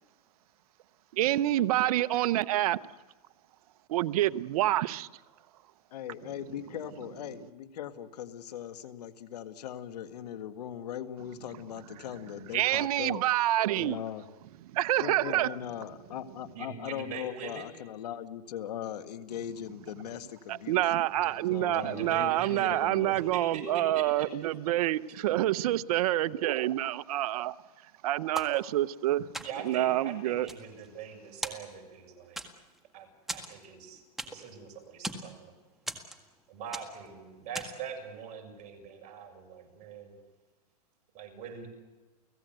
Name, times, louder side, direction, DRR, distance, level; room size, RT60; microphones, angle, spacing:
voice 1, 1.1-2.8 3.9-5.1 12.5-14.0 14.7-15.5 20.5-27.5 28.0-29.3 29.6-30.5, right 14 dB, 65° right, 0.8 m, -27 dB
voice 2, 5.9-13.2 13.7-14.3 15.0-20.8 21.5-23.2, left 10 dB, 80° left, 1.8 m, -39 dB
voice 3, 16.5-17.7 21.2-21.3 21.7-22.7 23.0-24.3 24.6-24.7 29.4-32.4 32.9-35.5 36.5-40.1 41.1-41.7, right 6 dB, 35° right, 6.8 m, -43 dB
sound 1, 28.3-29.0 29.3-29.8 30.3-31.1 31.4-32.0 32.4-32.8 33.3-34.6 34.8-35.3 35.9-36.4 36.7-37.1 37.5-37.9, right 1 dB, ahead, 1.8 m, -39 dB
30.0 x 17.5 x 8.0 m
supercardioid pair, 145°, 20 cm